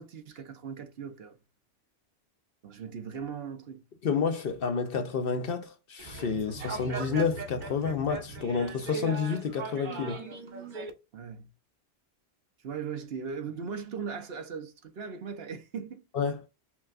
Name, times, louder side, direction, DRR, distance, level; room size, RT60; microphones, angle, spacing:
voice 1, 0.0-1.4 2.6-3.8 11.1-11.5 12.6-16.0, right 6 dB, 70° right, 1.0 m, -39 dB
voice 2, 4.0-10.2 16.1-16.4, left 6 dB, 65° left, 0.8 m, -30 dB
sound 1, 6.0-10.9, right 4 dB, 50° right, 1.0 m, -39 dB
5.7 x 2.3 x 2.4 m
omnidirectional pair, 1.1 m